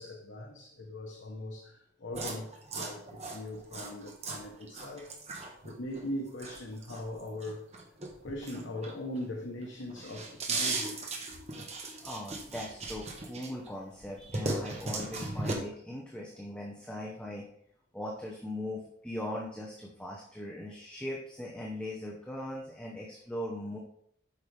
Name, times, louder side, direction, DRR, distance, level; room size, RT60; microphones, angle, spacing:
voice 1, 0.0-7.6 8.2-11.0, left 1 dB, 90° left, 1.0 m, -40 dB
sound 1, 2.1-9.3 9.6-13.7 14.0-15.5, right 3 dB, 35° right, 1.2 m, -37 dB
voice 2, 12.0-17.4 17.9-23.8, left 1 dB, 5° left, 0.8 m, -40 dB
8.5 x 5.8 x 3.4 m
head